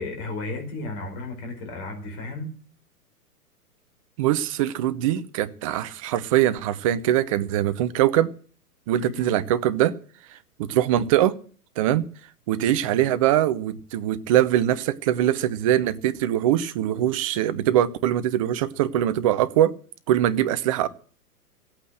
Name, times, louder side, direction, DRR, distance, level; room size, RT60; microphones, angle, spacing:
voice 1, 0.0-2.5 9.0-9.4, left 2 dB, 35° left, 4.8 m, -34 dB
voice 2, 4.2-8.3 8.9-9.9 10.3-11.3 11.8-12.0 12.5-19.7 20.1-20.9, right 12 dB, 25° right, 0.6 m, -22 dB
16.5 x 8.8 x 7.7 m
figure-of-eight pair, 110°, 46 cm